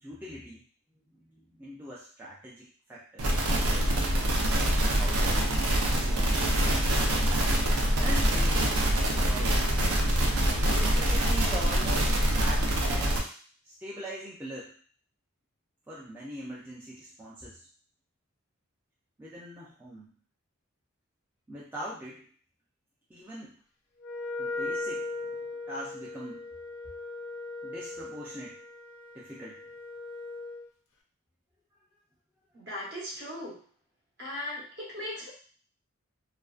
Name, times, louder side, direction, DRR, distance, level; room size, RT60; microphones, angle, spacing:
voice 1, 0.0-0.6 1.1-3.3 4.8-6.5 8.0-8.8 9.1-9.8 10.6-13.3 13.6-14.7 15.9-17.7 19.2-20.2 21.5-22.3 23.1-23.6 24.4-25.4 25.7-26.5 27.6-28.6 29.1-29.6, equal, 10° right, -7 dB, 0.3 m, -42 dB
sound 1, 3.2-13.2, right 1 dB, 85° right, 0.5 m, -25 dB
Wind instrument woodwind instrument, 24.0-30.7, left 2 dB, 70° left, 0.4 m, -38 dB
voice 2, 32.5-33.6 34.2-35.3, left 1 dB, 50° right, -4 dB, 0.9 m, -38 dB
2.5 x 2.1 x 2.3 m, 0.43 s
head